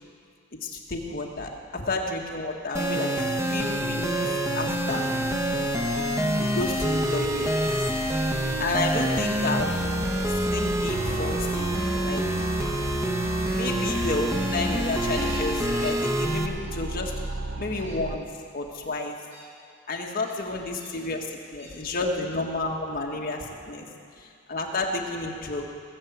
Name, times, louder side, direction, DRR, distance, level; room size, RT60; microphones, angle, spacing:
voice 1, 0.6-4.2 4.5-5.1 6.1-7.5 8.6-9.8 10.5-11.7 12.0-12.5 13.5-17.1 17.6-18.3 18.5-19.1 19.9-21.3 21.5-23.9 24.2-25.6, left 2 dB, 45° left, 0 dB, 1.7 m, -31 dB
sound 1, 2.7-16.5, right 1 dB, 15° right, 0.9 m, -26 dB
Gull seagull, 2.9-3.1 4.0-4.2 4.8-5.1 5.4-8.2 9.5-10.2 11.1-11.4 13.3-14.5 14.9-16.0 16.3-16.6 16.9-17.3 17.7-18.0 18.7-18.9 19.3-19.5 20.2-20.9 21.6-21.8, right 1 dB, 40° right, 3.6 m, -46 dB
sound 2, 3.5-18.2, right 2 dB, 60° right, 0.6 m, -39 dB
19.5 x 7.4 x 8.0 m, 2.5 s
head